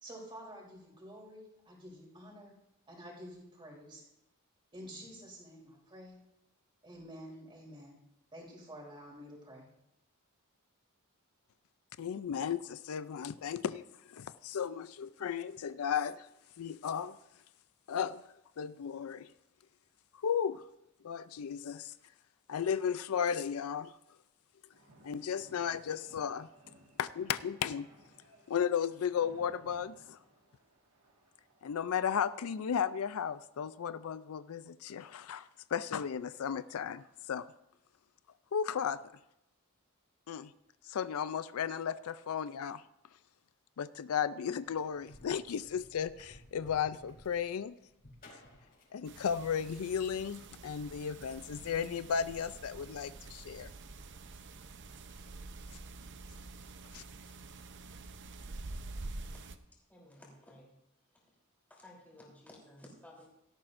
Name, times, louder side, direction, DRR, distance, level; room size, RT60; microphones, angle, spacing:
voice 1, 0.0-2.5 2.9-4.0 4.7-6.2 6.8-8.0 8.3-9.7, equal, 25° right, -2 dB, 3.5 m, -49 dB
voice 2, 12.0-16.3 16.6-17.2 17.9-18.2 18.6-19.3 20.1-20.6 21.0-21.9 22.5-23.9 25.0-26.5 27.0-27.9 28.5-30.2 31.6-37.5 38.5-39.0 40.3-40.5 40.8-42.8 43.8-47.8 48.9-53.7 56.9-57.0, left 7 dB, 75° left, 14 dB, 0.4 m, -35 dB
sound 1, 24.7-32.8, right 1 dB, 75° right, 1.8 m, -62 dB
sound 2, 44.6-49.8, left 1 dB, 45° left, 5.2 m, -58 dB
sound 3, 49.0-59.6, right 3 dB, 55° right, 0.7 m, -47 dB
voice 3, 59.9-60.8 61.7-63.3, left 1 dB, 10° left, -3 dB, 3.4 m, -55 dB
17.0 x 13.0 x 2.6 m, 0.84 s
head